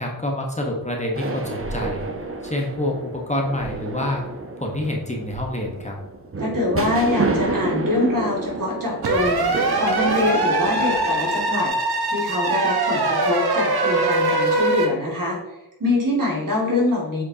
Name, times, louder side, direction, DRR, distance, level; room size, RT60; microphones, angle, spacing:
voice 1, 0.0-2.1 2.4-4.2 4.6-6.0, left 1 dB, 20° left, -1 dB, 1.1 m, -27 dB
sound 1, 1.1-11.7, right 2 dB, 35° right, 0.9 m, -29 dB
voice 2, 6.4-11.7 12.1-15.4 15.8-17.2, left 2 dB, 55° right, -3 dB, 2.3 m, -24 dB
sound 2, 9.0-14.9, right 2 dB, 80° right, 1.1 m, -22 dB
8.2 x 5.0 x 2.8 m, 1.0 s
wide cardioid pair, 115°, 38 cm